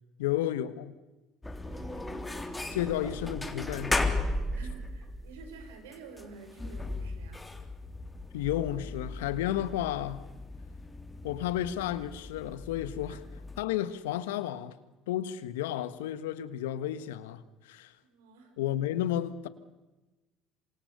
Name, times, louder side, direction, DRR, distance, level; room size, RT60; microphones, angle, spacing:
voice 1, 0.2-0.9 2.7-4.0 8.3-10.3 11.2-13.2 13.6-14.7 15.1-17.9 18.6-19.5, left 12 dB, 85° left, 1.4 m, -32 dB
sound 1, 1.4-13.6, left 2 dB, 15° left, 3.5 m, -36 dB
voice 2, 1.6-2.3 2.7-3.0 4.5-7.5 13.1-13.2 18.0-18.5, right 4 dB, 90° right, 5.6 m, -50 dB
27.5 x 25.5 x 6.8 m
hypercardioid pair, 70°, 0 cm